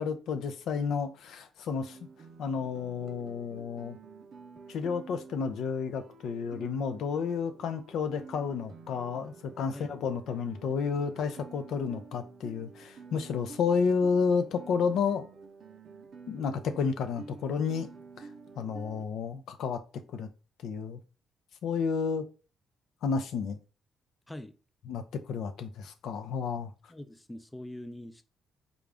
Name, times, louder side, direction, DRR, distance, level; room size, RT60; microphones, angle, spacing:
voice 1, 0.0-2.0 2.4-4.0 4.7-15.3 16.3-17.9 18.2-18.3 18.6-19.8 20.1-20.3 20.6-21.0 21.6-22.3 23.0-23.6 24.9-26.7, left 5 dB, 75° left, 0.5 m, -31 dB
Guitar, 1.7-19.1, right 4 dB, 55° right, 0.5 m, -50 dB
voice 2, 26.9-28.2, left 1 dB, 10° left, 0.4 m, -43 dB
3.8 x 2.3 x 3.3 m
cardioid pair, 90°, 0 cm